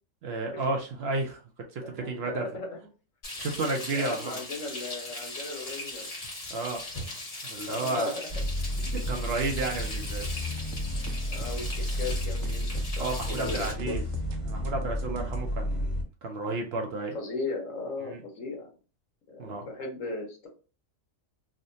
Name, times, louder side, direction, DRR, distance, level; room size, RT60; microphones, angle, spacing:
voice 1, 0.2-1.4 1.7-2.5 3.4-4.4 6.5-6.8 7.4-8.1 8.8-10.3 13.0-14.0 14.4-17.2 18.1-18.2 19.4-19.7, right 3 dB, 60° right, 2 dB, 0.7 m, -32 dB
voice 2, 1.8-2.8 3.9-6.1 7.7-8.2 11.3-14.0 17.1-18.7 19.3-20.5, left 3 dB, 75° left, 1 dB, 1.3 m, -37 dB
Frying (food), 3.2-13.7, left 2 dB, 60° left, 1.7 m, -39 dB
sound 1, 8.3-16.0, equal, 25° left, 1.3 m, -32 dB
sound 2, 10.0-15.5, right 1 dB, 80° right, 1.0 m, -43 dB
3.5 x 2.1 x 2.6 m, 0.35 s
omnidirectional pair, 1.3 m